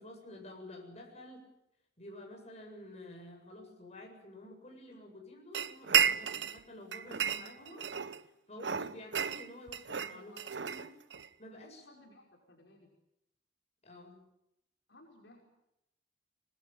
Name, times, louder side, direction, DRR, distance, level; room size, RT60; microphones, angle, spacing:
voice 1, 0.0-1.5 2.0-7.8 8.5-10.3 10.6-10.9 11.4-11.8 13.8-14.2, left 1 dB, 35° left, 2 dB, 7.7 m, -50 dB
sound 1, 5.5-6.6 6.9-8.2 8.6-11.3, right 8 dB, 65° right, 0.9 m, -32 dB
voice 2, 10.1-10.6 11.7-12.9 14.9-15.4, left 2 dB, 65° left, 0 dB, 5.5 m, -59 dB
25.0 x 21.0 x 8.7 m, 0.82 s
head